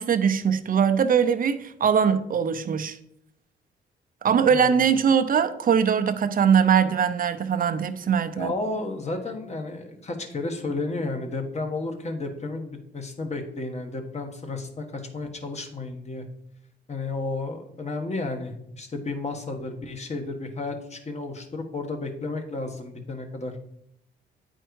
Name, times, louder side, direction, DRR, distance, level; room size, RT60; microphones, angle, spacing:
voice 1, 0.0-3.0 4.2-8.5, right 7 dB, 45° right, 9 dB, 0.7 m, -21 dB
voice 2, 4.5-4.8 8.4-16.2 16.9-23.5, left 3 dB, 35° left, 5 dB, 1.5 m, -32 dB
9.0 x 4.5 x 4.7 m, 0.76 s
cardioid pair, 90°, 20 cm